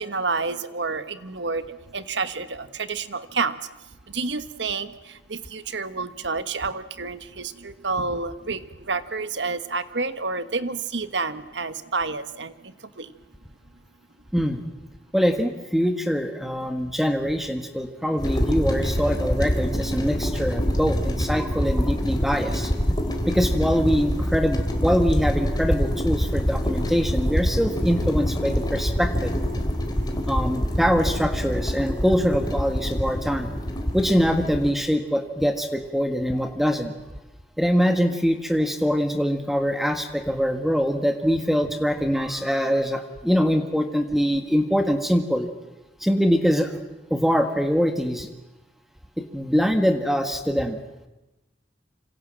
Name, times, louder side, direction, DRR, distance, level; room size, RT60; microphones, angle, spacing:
voice 1, 0.0-3.6 4.1-13.1, right 4 dB, 85° right, 11 dB, 1.4 m, -29 dB
voice 2, 14.3-14.6 15.1-22.7 23.3-29.3 30.3-33.5 33.9-36.9 37.6-45.5 46.0-46.8 47.1-48.3 49.2-50.8, equal, ahead, 5 dB, 1.6 m, -23 dB
sound 1, 18.2-34.7, equal, 25° left, 3.4 m, -25 dB
27.0 x 26.5 x 7.6 m, 1.0 s
head